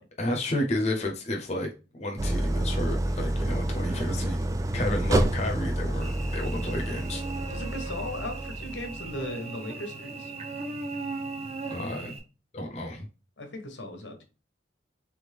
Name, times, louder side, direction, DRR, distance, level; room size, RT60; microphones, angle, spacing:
voice 1, 0.2-4.4 4.7-7.2 11.7-12.1 12.5-13.1, left 1 dB, 35° left, 0.7 m, -31 dB
Idling, 2.2-9.2, right 1 dB, 20° right, 0.3 m, -29 dB
Cricket / Buzz, 6.0-12.2, right 3 dB, 35° right, 0.8 m, -38 dB
voice 2, 7.5-10.3 13.4-14.2, left 1 dB, 85° left, 1.1 m, -37 dB
3.5 x 3.5 x 3.3 m
head